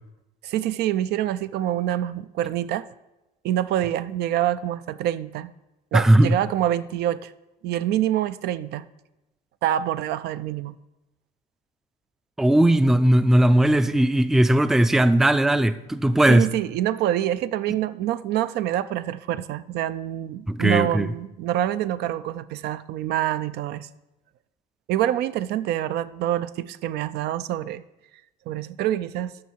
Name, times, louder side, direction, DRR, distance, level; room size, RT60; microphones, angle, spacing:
voice 1, 0.4-2.9 3.4-5.5 5.9-7.3 7.6-8.9 9.6-10.7 16.3-23.9 24.9-27.8 28.5-29.3, right 12 dB, 75° right, 0.4 m, -26 dB
voice 2, 5.9-6.4 12.4-16.5 20.5-21.1, right 1 dB, 5° right, 0.3 m, -18 dB
12.5 x 6.2 x 4.5 m
cardioid pair, 110°, 17 cm